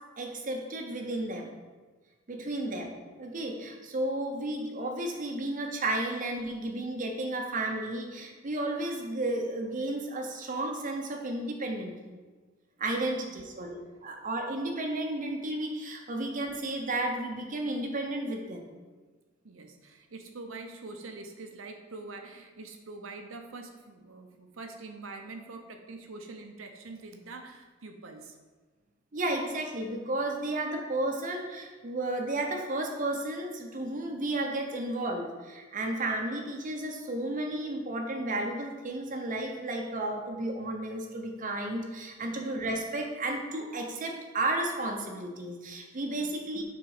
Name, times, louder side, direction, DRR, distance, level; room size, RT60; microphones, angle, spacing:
voice 1, 0.2-1.5 2.3-12.2 12.8-18.7 29.1-46.6, right 2 dB, 40° right, 2 dB, 0.7 m, -33 dB
voice 2, 13.0-13.4 19.4-28.4 42.2-42.5 46.1-46.3, right 3 dB, 80° right, 5 dB, 0.7 m, -45 dB
6.2 x 4.0 x 4.8 m, 1.3 s
head